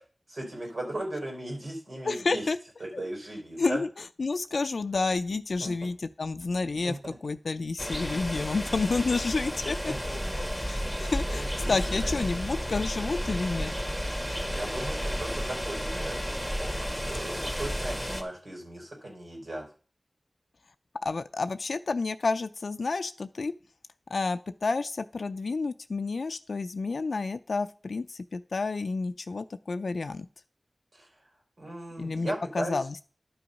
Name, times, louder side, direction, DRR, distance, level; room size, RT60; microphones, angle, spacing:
voice 1, 0.3-2.5 2.8-3.8 5.6-5.7 6.8-7.1 9.9-10.2 10.8-11.7 12.0-12.4 14.5-19.6 30.9-31.1 31.6-32.8, right 1 dB, 70° right, -1 dB, 4.5 m, -37 dB
voice 2, 2.0-2.6 2.9-3.0 3.6-3.9 4.2-7.0 7.2-13.7 21.0-23.5 24.1-30.3 32.0-32.9, left 3 dB, 80° left, 10 dB, 0.4 m, -30 dB
sound 1, 7.8-18.2, equal, 10° right, 2.0 m, -32 dB
11.0 x 5.6 x 5.3 m, 0.39 s
wide cardioid pair, 50°, 0 cm